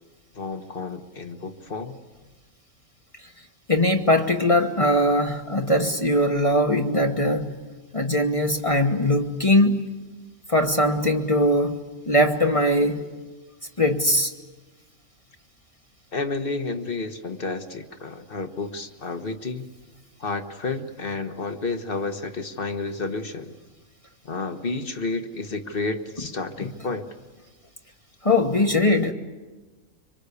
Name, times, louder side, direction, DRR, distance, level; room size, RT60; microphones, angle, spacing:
voice 1, 0.3-2.0 16.1-19.7 20.2-23.5 24.2-27.1, left 3 dB, 45° left, 8 dB, 1.5 m, -31 dB
voice 2, 3.7-7.5 7.9-9.8 10.5-11.8 12.1-13.0 13.8-14.3 26.6-26.7 28.2-29.1, left 1 dB, 25° left, 4 dB, 1.3 m, -21 dB
26.0 x 25.0 x 8.4 m, 1.2 s
omnidirectional pair, 1.3 m